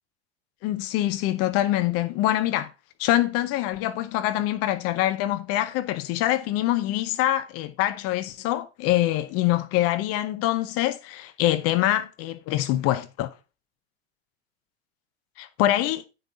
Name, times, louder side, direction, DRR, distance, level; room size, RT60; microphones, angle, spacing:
voice 1, 0.6-2.7 3.0-13.3 15.4-16.1, left 14 dB, 50° left, 0.7 m, -24 dB
9.0 x 5.5 x 3.8 m
hypercardioid pair, 85°, 32 cm